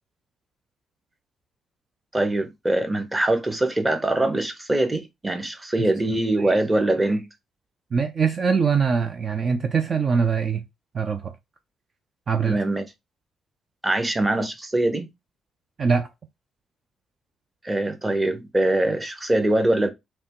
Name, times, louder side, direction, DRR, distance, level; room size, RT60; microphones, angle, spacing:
voice 1, 2.1-7.3 12.4-12.8 13.8-15.1 17.6-19.9, right 1 dB, 15° right, 0.9 m, -23 dB
voice 2, 7.9-10.6 10.9-11.3 12.3-12.6 15.8-16.1, right 5 dB, 45° right, 0.5 m, -23 dB
3.4 x 2.9 x 4.3 m
cardioid pair, 90°, 0 cm